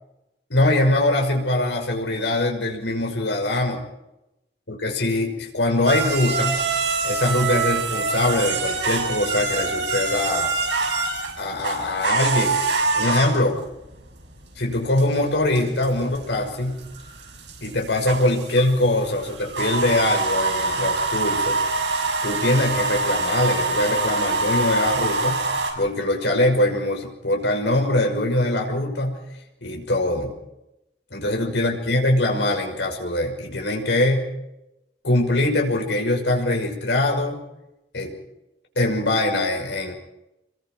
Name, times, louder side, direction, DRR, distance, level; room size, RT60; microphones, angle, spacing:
voice 1, 0.5-3.8 4.7-6.6 7.0-10.5 11.3-12.6 13.0-13.6 14.6-16.8 17.6-21.6 22.2-25.4 25.8-29.2 29.6-30.3 31.1-34.3 35.0-37.4 37.9-38.1 38.8-39.9, left 1 dB, 85° left, 2 dB, 6.0 m, -22 dB
sound 1, 5.9-25.7, right 3 dB, 85° right, 6.4 m, -25 dB
29.0 x 23.0 x 4.7 m, 0.89 s
head